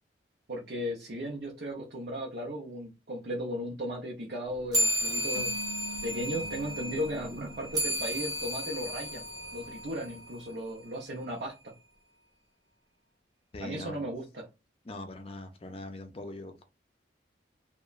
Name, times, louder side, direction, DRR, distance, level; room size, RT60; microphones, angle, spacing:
voice 1, 0.5-5.5 6.0-9.3 9.5-11.5 13.6-14.5, equal, 60° right, 0.6 m, -36 dB
sound 1, 4.7-10.5, equal, 20° right, 0.7 m, -33 dB
sound 2, 5.3-8.7, equal, 80° left, 0.5 m, -46 dB
voice 2, 13.5-14.1 14.8-16.6, left 2 dB, 30° left, 0.5 m, -42 dB
2.9 x 2.1 x 2.3 m
head